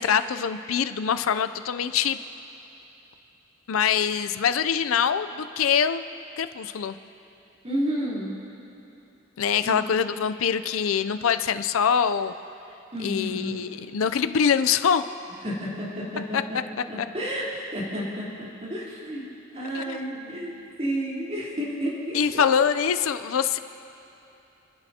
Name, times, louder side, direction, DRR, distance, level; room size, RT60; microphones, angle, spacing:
voice 1, 0.0-2.2 3.7-6.0 6.4-7.0 9.4-12.3 13.0-15.0 16.3-16.4 17.0-17.1 19.7-20.4 22.1-23.6, left 7 dB, 90° left, 11 dB, 0.5 m, -24 dB
voice 2, 7.6-8.3 9.6-9.8 12.9-13.7 15.4-16.4 16.9-19.2 19.5-20.5 20.8-22.4, equal, 35° right, -7 dB, 3.5 m, -31 dB
29.0 x 11.5 x 2.8 m, 3.0 s
head